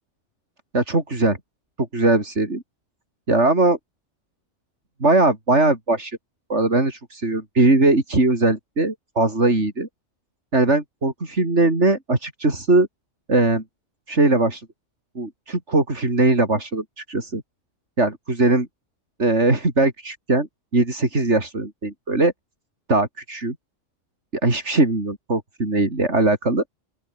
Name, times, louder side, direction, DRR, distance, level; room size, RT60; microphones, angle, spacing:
voice 1, 0.7-1.4 1.8-2.6 3.3-3.8 5.0-6.2 6.5-9.9 10.5-12.9 13.3-13.6 14.1-14.7 15.1-17.4 18.0-18.7 19.2-22.3 22.9-23.6 24.4-26.6, right 2 dB, 65° right, 4.6 m, -20 dB
open air
omnidirectional pair, 1.3 m